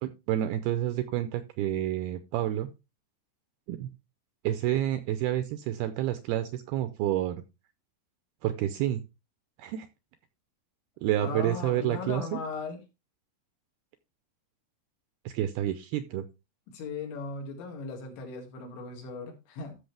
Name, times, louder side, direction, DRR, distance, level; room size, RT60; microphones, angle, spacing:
voice 1, 0.0-2.7 3.7-3.9 4.4-7.4 8.4-9.0 9.6-9.9 11.0-12.3 15.3-16.3, right 12 dB, 80° right, 11 dB, 2.2 m, -29 dB
voice 2, 11.2-12.8 16.7-19.8, left 4 dB, 85° left, 2 dB, 4.5 m, -37 dB
13.5 x 6.4 x 3.4 m, 0.26 s
omnidirectional pair, 5.1 m